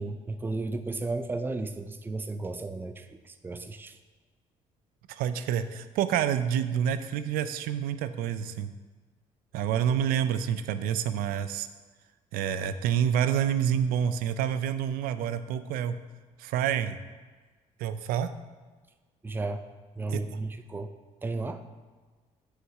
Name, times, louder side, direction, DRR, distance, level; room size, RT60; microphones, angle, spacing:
voice 1, 0.0-4.0 19.2-19.6 20.0-20.9 21.2-21.6, right 3 dB, 15° right, 9 dB, 0.5 m, -34 dB
voice 2, 5.2-8.7 9.5-11.7 12.3-15.9 16.4-17.0 17.8-18.3 20.1-20.2, right 9 dB, 90° right, 12 dB, 0.5 m, -28 dB
6.5 x 4.8 x 6.4 m, 1.4 s
cardioid pair, 100°, 14 cm